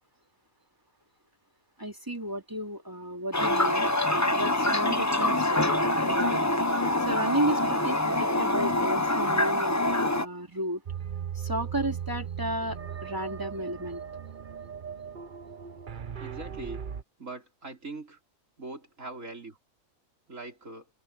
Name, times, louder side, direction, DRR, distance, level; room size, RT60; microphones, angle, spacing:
voice 1, 1.8-3.9 4.3-5.7 6.0-6.4 7.1-10.8 11.3-14.0, right 1 dB, 15° right, 3.1 m, -33 dB
Toilet flush, 3.3-10.3, left 1 dB, 15° left, 0.9 m, -25 dB
sound 1, 10.9-17.0, right 8 dB, 40° right, 1.0 m, -38 dB
voice 2, 16.2-16.9 17.2-18.2 18.6-19.6 20.3-20.9, right 3 dB, 60° right, 5.3 m, -41 dB
omnidirectional pair, 1.5 m